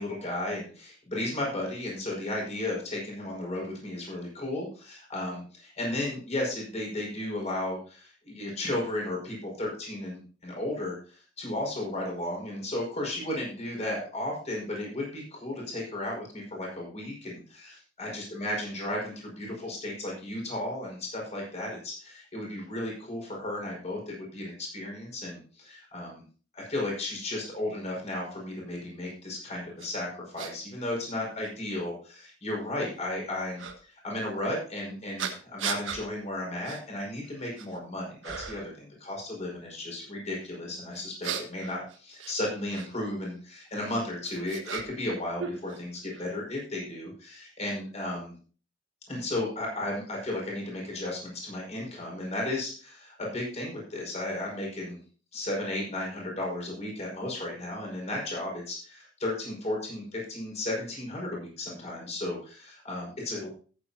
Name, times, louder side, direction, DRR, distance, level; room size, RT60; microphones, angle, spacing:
voice 1, 0.0-26.2 26.5-30.1 30.3-48.3 49.1-55.0 55.3-63.5, left 1 dB, 35° left, -2 dB, 5.3 m, -34 dB
sound 1, 29.8-29.9 30.4-30.5 31.4-31.5 33.6-33.8 35.2-36.0 36.6-36.8 37.3-37.8 38.2-38.7 40.9-42.9 43.8-45.1 45.4-46.3, right 6 dB, 85° right, 1.5 m, -37 dB
14.5 x 9.4 x 2.8 m, 0.39 s
head